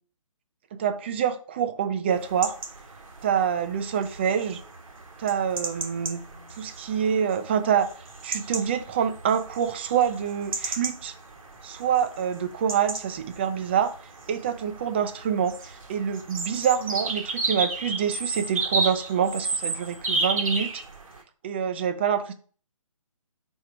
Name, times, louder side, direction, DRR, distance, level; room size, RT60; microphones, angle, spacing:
voice 1, 0.7-2.6 3.2-4.6 5.2-6.2 6.5-7.9 8.2-11.1 11.6-13.9 14.3-20.8 21.4-22.3, right 8 dB, 20° right, 0.4 m, -26 dB
sound 1, 2.1-21.2, right 3 dB, 80° right, 1.4 m, -34 dB
4.5 x 4.4 x 4.8 m
figure-of-eight pair, 150°, 18 cm